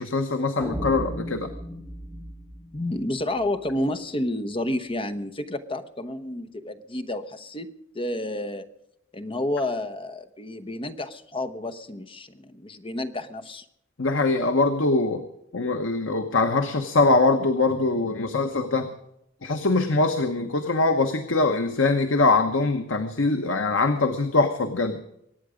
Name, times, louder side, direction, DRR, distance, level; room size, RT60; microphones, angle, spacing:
voice 1, 0.0-1.5 14.0-15.2 15.5-18.9 19.4-25.0, left 3 dB, 75° left, 7 dB, 1.1 m, -23 dB
sound 1, 0.6-3.7, equal, 5° left, 3.4 m, -35 dB
voice 2, 2.7-8.7 9.1-13.6, left 1 dB, 25° left, 9 dB, 1.0 m, -30 dB
23.5 x 9.2 x 5.1 m, 0.78 s
head